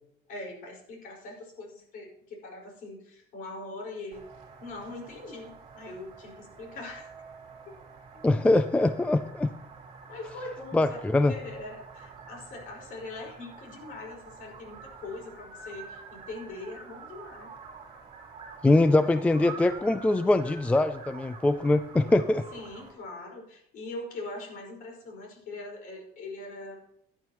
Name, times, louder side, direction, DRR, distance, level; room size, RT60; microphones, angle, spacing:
voice 1, 0.3-4.2 4.6-7.1 10.1-11.0 11.3-17.5 22.5-26.8, left 2 dB, 60° left, 0 dB, 4.9 m, -42 dB
sound 1, 4.1-22.9, right 5 dB, 35° right, 2.9 m, -47 dB
voice 2, 8.2-9.5 10.7-11.3 18.6-22.4, left 2 dB, 10° left, 11 dB, 0.3 m, -23 dB
16.5 x 11.0 x 3.0 m, 0.74 s
cardioid pair, 170°, 17 cm